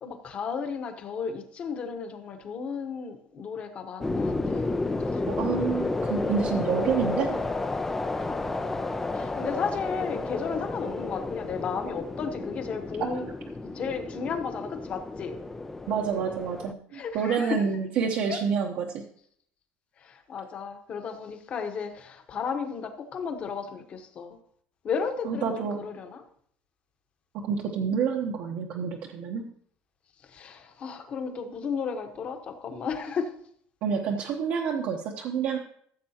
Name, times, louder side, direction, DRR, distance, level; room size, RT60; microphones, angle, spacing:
voice 1, 0.0-4.7 5.0-5.5 8.3-8.4 9.1-13.3 13.6-15.4 16.9-17.6 18.3-18.4 20.0-24.4 24.8-26.2 30.3-33.3, left 6 dB, 30° left, 6 dB, 1.2 m, -34 dB
sound 1, 4.0-16.7, left 2 dB, 10° left, 0.5 m, -31 dB
voice 2, 5.3-7.4 13.0-13.1 15.9-19.0 25.2-25.8 27.3-29.4 33.8-35.6, right 6 dB, 50° right, 0 dB, 1.0 m, -28 dB
14.5 x 7.5 x 2.9 m, 0.63 s
cardioid pair, 175°, 4 cm